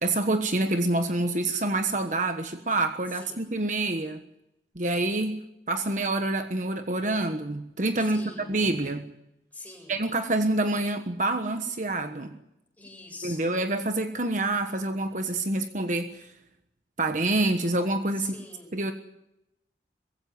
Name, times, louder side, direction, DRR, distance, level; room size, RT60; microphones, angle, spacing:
voice 1, 0.0-4.2 4.7-5.4 5.7-9.1 9.9-12.4 13.2-16.3 17.0-18.3 18.7-18.9, right 2 dB, 45° right, 7 dB, 1.3 m, -27 dB
voice 2, 3.1-3.4 8.0-8.5 9.5-10.0 12.8-13.5 18.2-18.7, left 2 dB, 10° left, 1 dB, 7.3 m, -44 dB
21.5 x 16.5 x 9.5 m, 0.86 s
head